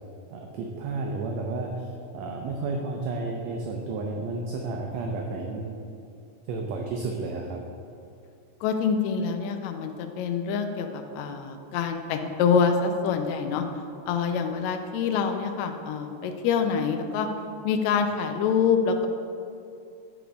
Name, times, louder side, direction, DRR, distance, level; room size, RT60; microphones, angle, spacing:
voice 1, 0.3-1.9 2.1-5.8 6.5-7.6, right 3 dB, 75° right, 1 dB, 1.6 m, -32 dB
voice 2, 8.6-13.7 14.1-17.3 17.6-19.1, left 6 dB, 80° left, 5 dB, 1.7 m, -26 dB
9.3 x 4.6 x 5.0 m, 2.5 s
omnidirectional pair, 3.6 m